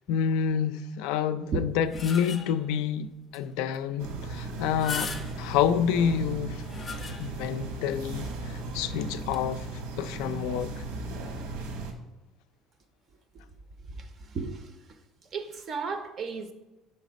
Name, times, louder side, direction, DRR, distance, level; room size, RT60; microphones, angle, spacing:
voice 1, 0.1-6.6 7.2-9.7 10.0-10.8, left 8 dB, 80° left, 0.4 m, -28 dB
sound 1, 1.5-2.7 3.3-3.4 3.7-3.8 4.6-5.6 6.3-7.5 8.0-8.1 9.2-9.4, left 5 dB, 20° left, 0.5 m, -38 dB
sound 2, 4.0-11.9, right 2 dB, 85° right, 1.0 m, -37 dB
voice 2, 13.9-14.8 15.3-16.5, right 4 dB, 30° right, 0.4 m, -34 dB
5.8 x 4.1 x 5.1 m
cardioid pair, 170°, 0 cm